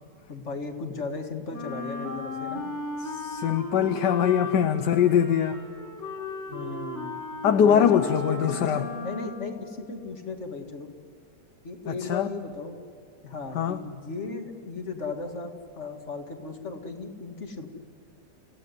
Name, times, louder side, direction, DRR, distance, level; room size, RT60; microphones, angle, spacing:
voice 1, 0.3-2.6 6.5-7.2 7.6-10.9 11.6-12.8 13.2-17.7, left 4 dB, 40° left, 4 dB, 2.3 m, -36 dB
Wind instrument woodwind instrument, 1.5-9.7, left 2 dB, 10° left, 3.7 m, -36 dB
voice 2, 3.0-5.6 7.4-8.9 11.9-12.3 13.5-13.8, left 8 dB, 75° left, 8 dB, 1.4 m, -22 dB
30.0 x 17.0 x 9.7 m, 2.3 s
omnidirectional pair, 1.9 m